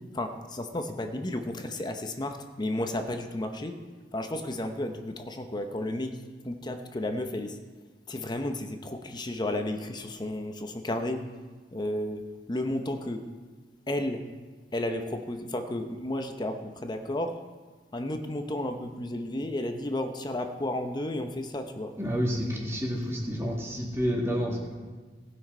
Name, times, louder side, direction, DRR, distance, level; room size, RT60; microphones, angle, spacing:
voice 1, 0.1-3.7 4.1-6.2 6.4-7.6 8.1-11.2 11.7-13.2 13.9-14.2 14.7-17.4 17.9-21.9, left 1 dB, 25° left, 6 dB, 0.7 m, -32 dB
voice 2, 22.0-24.6, equal, 15° right, -2 dB, 2.1 m, -29 dB
18.0 x 6.1 x 4.4 m, 1.4 s
head